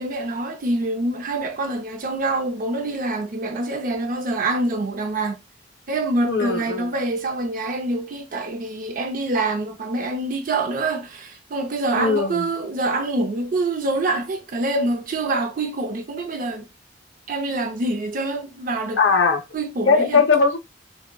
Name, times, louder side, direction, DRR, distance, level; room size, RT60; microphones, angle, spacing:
voice 1, 0.0-5.4 5.9-16.7 17.3-19.0 19.5-20.2, right 2 dB, 50° right, 0.5 m, -25 dB
voice 2, 6.3-6.9 11.9-12.5 19.0-19.4 19.9-20.6, left 4 dB, 80° left, 0.6 m, -19 dB
3.6 x 2.1 x 2.2 m
head